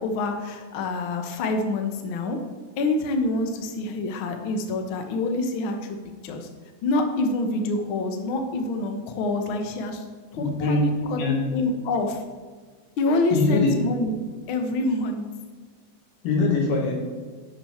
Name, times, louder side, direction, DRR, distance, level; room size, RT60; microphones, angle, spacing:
voice 1, 0.0-2.4 2.8-6.0 6.2-6.5 6.8-10.0 10.3-11.2 11.5-12.2 13.0-14.1 14.5-15.2, left 2 dB, 65° left, 5 dB, 1.2 m, -26 dB
voice 2, 10.4-11.4 13.3-13.7 16.2-16.9, left 3 dB, 90° left, -1 dB, 3.5 m, -23 dB
11.5 x 6.7 x 4.3 m, 1.5 s
omnidirectional pair, 3.7 m